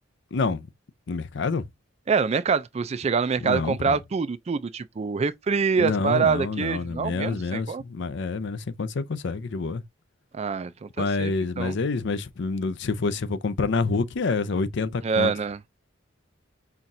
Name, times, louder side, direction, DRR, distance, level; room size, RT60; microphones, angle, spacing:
voice 1, 0.3-0.7 1.1-1.6 3.4-4.0 5.8-9.8 11.0-15.3, left 4 dB, 65° left, 0.5 m, -27 dB
voice 2, 2.1-7.8 10.3-11.8 15.0-15.6, right 5 dB, 35° right, 0.4 m, -25 dB
5.8 x 2.4 x 2.6 m
head